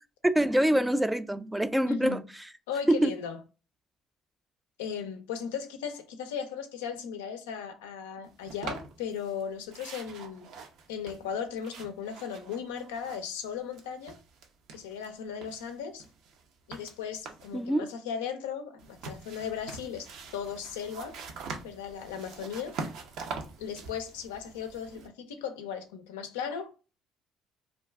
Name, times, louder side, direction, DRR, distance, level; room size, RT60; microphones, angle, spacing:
voice 1, 0.3-2.2 2.9-3.1 17.5-17.9, right 1 dB, 10° right, 0.3 m, -25 dB
voice 2, 1.9-2.3 2.7-3.4 4.8-10.5 10.9-14.2 14.7-16.0 16.7-20.1 20.3-21.2 21.6-22.7 23.6-26.7, left 7 dB, 85° left, 0.4 m, -37 dB
sound 1, 8.5-9.4 9.7-13.5 13.7-15.1 15.4-17.6 18.8-25.1, right 4 dB, 70° right, 0.5 m, -44 dB
2.4 x 2.3 x 3.3 m
hypercardioid pair, 60°, 0 cm